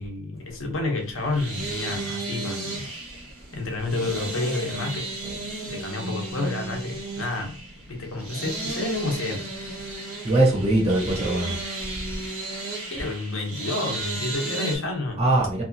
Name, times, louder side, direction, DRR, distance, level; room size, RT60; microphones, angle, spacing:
voice 1, 0.0-2.9 3.5-5.0 5.7-7.6 7.9-9.5 12.9-15.3, left 2 dB, 60° left, 0.8 m, -29 dB
sound 1, 1.0-14.8, right 2 dB, 80° right, 1.3 m, -34 dB
voice 2, 10.2-11.6 15.2-15.6, right 1 dB, 30° right, 0.7 m, -21 dB
2.7 x 2.4 x 2.6 m
head